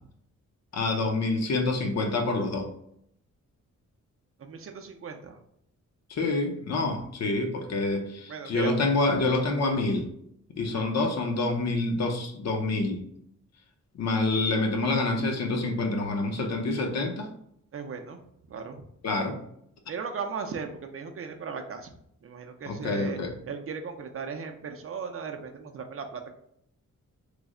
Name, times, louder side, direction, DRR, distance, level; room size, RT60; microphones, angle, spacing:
voice 1, 0.7-2.7 6.1-10.1 10.6-13.1 13.9-17.3 19.0-19.3 22.7-23.3, left 2 dB, 60° left, 4 dB, 0.6 m, -27 dB
voice 2, 4.4-5.4 8.3-8.7 17.7-18.2 18.5-18.8 19.9-23.2 23.5-26.3, right 5 dB, 50° right, 5 dB, 0.4 m, -37 dB
3.2 x 2.0 x 3.6 m, 0.72 s
wide cardioid pair, 140°, 30 cm